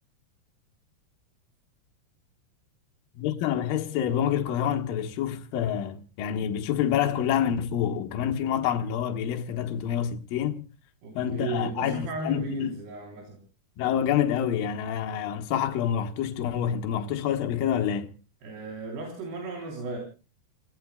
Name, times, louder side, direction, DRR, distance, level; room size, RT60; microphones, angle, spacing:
voice 1, 3.2-10.6 11.1-12.8 13.8-18.1, left 9 dB, 70° left, 2.8 m, -27 dB
voice 2, 11.0-13.4 18.4-20.0, right 3 dB, 85° right, 5.7 m, -35 dB
29.0 x 17.5 x 2.3 m
omnidirectional pair, 4.6 m